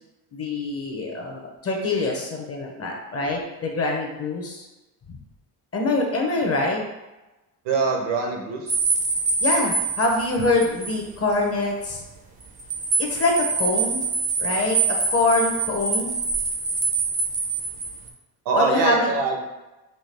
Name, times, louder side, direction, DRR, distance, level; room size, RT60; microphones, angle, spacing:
voice 1, 0.3-4.7 5.1-5.2 5.7-6.8 9.4-12.0 13.0-14.0 14.4-16.1 18.5-19.1, left 2 dB, 35° left, 1 dB, 0.6 m, -24 dB
voice 2, 7.6-8.7 18.4-19.4, right 4 dB, 85° right, 1 dB, 0.8 m, -23 dB
sound 1, 8.7-11.0 11.3-11.4 12.4-18.1, right 4 dB, 20° right, 0.4 m, -25 dB
4.3 x 2.7 x 3.2 m, 1.1 s
cardioid pair, 155°, 42 cm